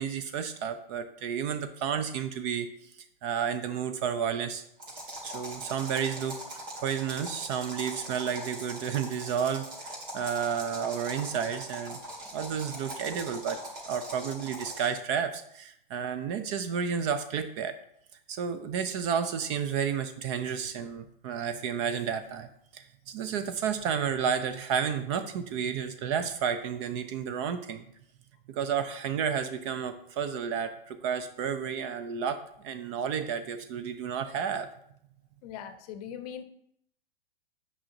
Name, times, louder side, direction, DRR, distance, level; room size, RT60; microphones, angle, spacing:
voice 1, 0.0-2.9 3.2-4.6 5.2-6.4 6.8-12.0 12.3-13.6 13.9-17.7 18.3-22.5 22.7-27.8 28.5-34.7, right 7 dB, 30° right, 10 dB, 0.4 m, -31 dB
sound 1, 4.8-15.0, right 1 dB, 65° right, 2.7 m, -41 dB
voice 2, 35.4-36.4, left 9 dB, 40° left, 9 dB, 0.7 m, -40 dB
8.6 x 5.4 x 2.8 m, 0.70 s
figure-of-eight pair, 105°, 29 cm